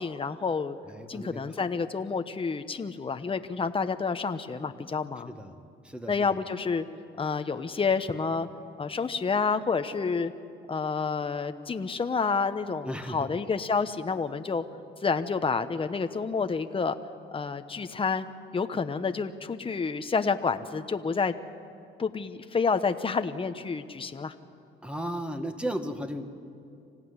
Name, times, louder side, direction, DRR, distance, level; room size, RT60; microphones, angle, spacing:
voice 1, 0.0-0.8 1.1-5.3 6.1-6.9 7.2-8.5 8.8-10.3 10.7-14.6 15.0-16.9 17.3-18.3 18.5-21.3 22.0-24.3, left 5 dB, 25° left, 9 dB, 1.0 m, -29 dB
voice 2, 0.9-1.4 5.3-5.6 5.8-6.4 12.8-13.3 24.8-26.3, equal, 5° right, 6 dB, 1.9 m, -35 dB
26.0 x 16.0 x 9.7 m, 2.5 s
cardioid pair, 90°, 20 cm